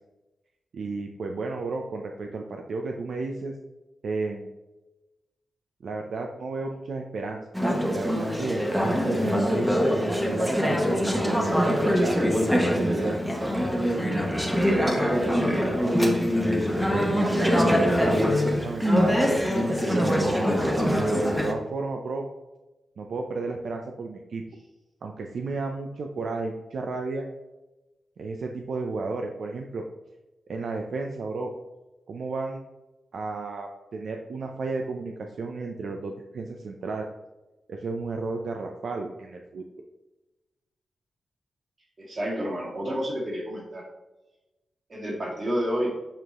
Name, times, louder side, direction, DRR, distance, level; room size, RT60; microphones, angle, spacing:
voice 1, 0.7-3.5 4.0-4.5 5.8-7.4 7.9-10.8 11.2-13.2 13.9-15.1 15.4-16.1 16.9-18.3 18.6-20.4 21.1-22.3 23.0-24.4 25.0-27.2 28.2-29.8 30.5-31.5 32.1-32.6 33.1-37.1 37.7-39.6, right 3 dB, 70° right, 2 dB, 0.5 m, -33 dB
Conversation / Chatter, 7.5-21.5, equal, 5° right, 0.9 m, -23 dB
voice 2, 42.0-43.8 44.9-45.9, equal, 40° right, -3 dB, 2.1 m, -29 dB
7.5 x 4.7 x 3.0 m, 1.1 s
wide cardioid pair, 105°, 0 cm